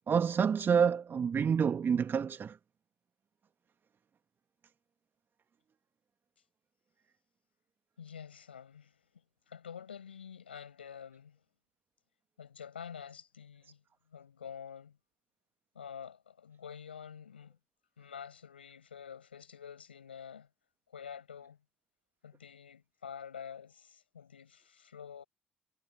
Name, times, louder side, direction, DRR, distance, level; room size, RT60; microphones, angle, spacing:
voice 1, 0.1-2.5, right 7 dB, 40° right, 1.9 m, -28 dB
voice 2, 8.0-11.4 12.4-13.8 14.1-15.0 15.7-17.6 18.0-20.5 20.9-21.6 22.2-25.2, left 7 dB, 85° left, 5.3 m, -48 dB
figure-of-eight pair, 45°, 6 cm